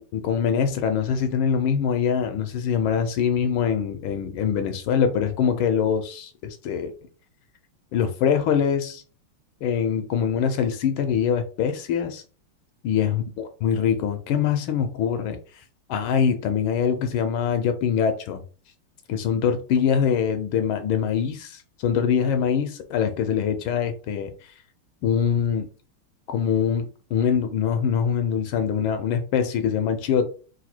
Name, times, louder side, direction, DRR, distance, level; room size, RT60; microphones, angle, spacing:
voice 1, 0.1-6.3 6.6-6.9 7.9-9.0 9.6-12.2 12.8-13.2 13.6-15.4 15.9-18.4 19.1-24.3 25.0-25.7 26.3-30.3, left 7 dB, 75° left, 1.3 m, -23 dB
4.0 x 2.6 x 4.3 m
omnidirectional pair, 2.4 m